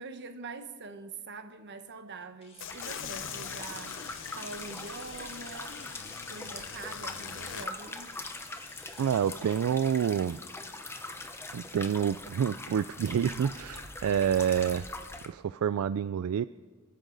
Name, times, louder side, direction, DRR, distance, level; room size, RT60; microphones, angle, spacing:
voice 1, 0.0-5.8 6.3-8.2, right 4 dB, 50° right, 1.1 m, -44 dB
sound 1, 2.4-12.2 12.5-12.6, left 4 dB, 25° left, 1.8 m, -53 dB
sound 2, 2.6-7.7, left 10 dB, 60° left, 0.5 m, -43 dB
sound 3, 2.7-15.3, left 2 dB, 10° left, 0.8 m, -42 dB
voice 2, 9.0-10.4 11.5-14.9 15.2-16.4, right 8 dB, 75° right, 0.3 m, -28 dB
28.0 x 9.9 x 4.0 m
head